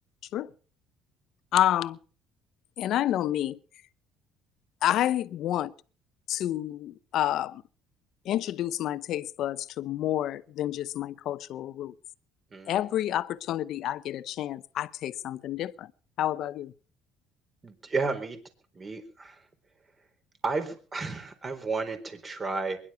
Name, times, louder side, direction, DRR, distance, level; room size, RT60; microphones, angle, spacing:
voice 1, 1.5-2.0 2.8-3.6 4.8-5.7 6.3-7.6 8.2-11.9 12.7-15.9 16.2-16.7, left 12 dB, 60° left, 0.8 m, -29 dB
voice 2, 12.5-12.9 17.6-18.4 18.7-19.4 20.4-22.8, right 3 dB, 25° right, 4.1 m, -32 dB
22.0 x 11.0 x 5.7 m
cardioid pair, 110°, 0 cm